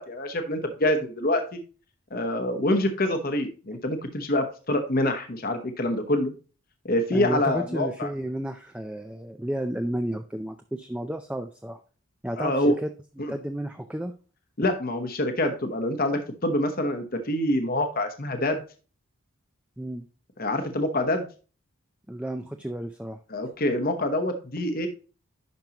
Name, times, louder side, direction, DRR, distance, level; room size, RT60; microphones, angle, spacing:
voice 1, 0.0-1.6 2.1-6.3 6.8-8.1 12.4-12.8 14.6-18.6 20.4-21.3 23.3-24.9, left 1 dB, 45° left, 7 dB, 0.9 m, -26 dB
voice 2, 7.1-11.8 12.2-12.9 13.3-14.1 19.8-20.1 22.1-23.2, right 1 dB, 5° right, 6 dB, 0.4 m, -32 dB
10.5 x 5.3 x 2.9 m, 0.35 s
head